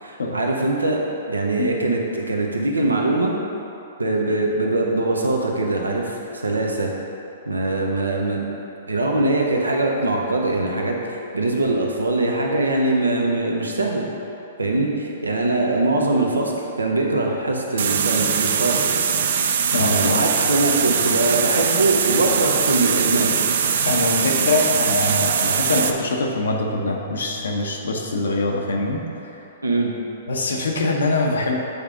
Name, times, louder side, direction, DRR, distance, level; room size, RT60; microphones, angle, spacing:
voice 1, 0.0-1.0 1.3-3.3 4.0-6.9 7.5-8.4 8.9-14.0 14.6-16.5 16.8-18.9 19.7-23.4 29.6-29.9, right 2 dB, 85° right, 0 dB, 0.7 m, -22 dB
sound 1, 17.8-25.9, right 7 dB, 60° right, 0.4 m, -21 dB
voice 2, 19.7-20.2 23.8-29.0 30.3-31.6, left 2 dB, 70° left, 0 dB, 0.8 m, -23 dB
8.0 x 3.5 x 3.6 m, 2.9 s
figure-of-eight pair, 115°, 0 cm